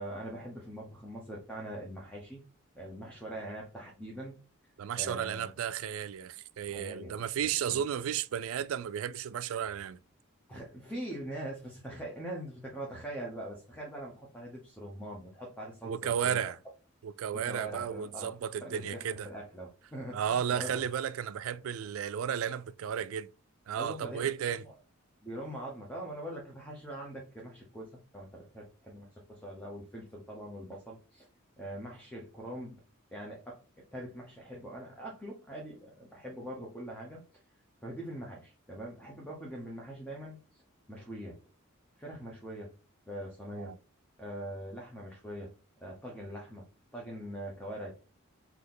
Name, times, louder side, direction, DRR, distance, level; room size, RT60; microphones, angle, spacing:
voice 1, 0.0-2.4 2.7-4.4 4.9-5.5 6.7-7.8 10.5-16.4 17.3-18.3 18.6-20.8 23.7-24.7 25.2-31.3 31.6-32.8 33.1-37.2 37.8-40.6 40.9-41.4 42.0-42.7 43.1-43.8 44.2-45.5 45.8-46.7 46.9-47.9, right 1 dB, 5° left, 0.8 m, -43 dB
voice 2, 4.8-10.0 15.8-16.6 17.0-19.3 20.1-23.3 23.7-24.6 43.5-43.8, right 8 dB, 75° right, 0.3 m, -33 dB
4.1 x 2.8 x 3.7 m
head